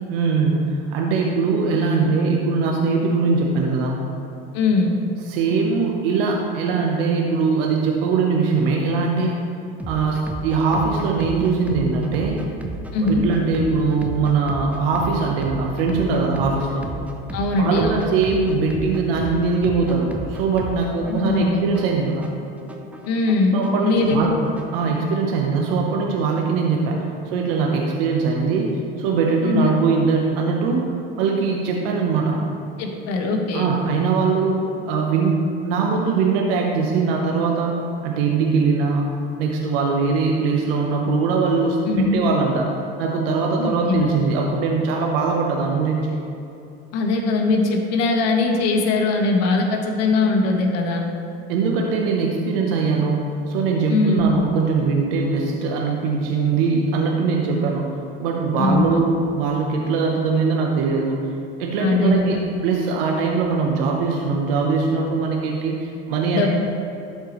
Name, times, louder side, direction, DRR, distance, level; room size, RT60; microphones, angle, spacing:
voice 1, 0.1-4.0 5.3-9.4 9.9-12.4 13.0-16.9 17.6-22.3 23.5-24.3 24.7-27.0 27.3-28.7 29.0-30.8 31.2-32.4 33.5-39.1 39.4-42.7 43.0-46.1 51.5-57.9 58.2-61.3 61.6-66.5, right 4 dB, 75° right, 0 dB, 0.9 m, -21 dB
voice 2, 4.5-4.9 12.9-13.2 17.3-18.1 21.0-21.6 23.1-24.3 29.4-29.7 32.8-33.7 41.9-42.2 43.6-44.0 46.9-51.0 53.9-54.4 58.6-59.0 61.8-62.4 66.3-66.5, left 3 dB, 60° left, 2 dB, 1.4 m, -20 dB
sound 1, 9.8-24.8, right 2 dB, 5° right, 0.6 m, -34 dB
12.5 x 4.4 x 3.1 m, 2.8 s
supercardioid pair, 95°, 29 cm